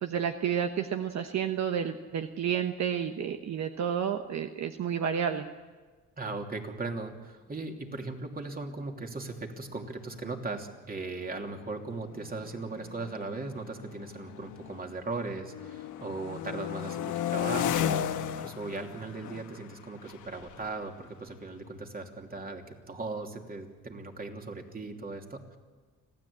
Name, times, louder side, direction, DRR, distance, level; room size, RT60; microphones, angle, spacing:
voice 1, 0.0-5.5, right 8 dB, 65° right, 6 dB, 1.2 m, -30 dB
voice 2, 6.2-25.6, right 3 dB, 30° right, 3 dB, 2.9 m, -38 dB
sound 1, 9.6-9.7 10.0-10.3 11.1-15.0 15.4-22.0, left 10 dB, 85° left, 1.2 m, -36 dB
26.0 x 15.5 x 8.6 m, 1.4 s
cardioid pair, 90°, 30 cm